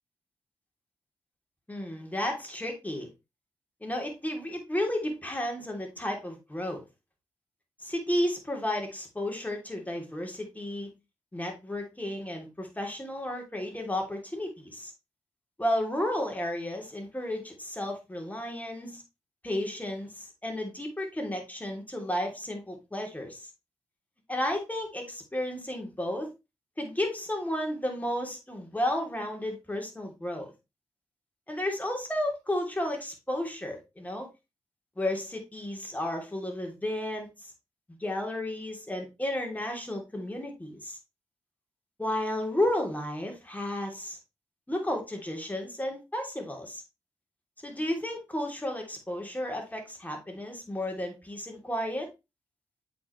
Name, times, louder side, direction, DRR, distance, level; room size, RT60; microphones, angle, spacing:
voice 1, 1.7-3.1 3.8-6.8 7.8-10.9 11.3-14.9 15.6-19.0 19.4-23.5 24.3-26.3 26.8-30.5 31.5-34.3 35.0-37.5 38.0-41.0 42.0-44.2 44.7-46.8 47.6-52.1, left 1 dB, 15° left, 3.1 m, -32 dB
7.9 x 5.2 x 3.2 m
supercardioid pair, 50°, 11 cm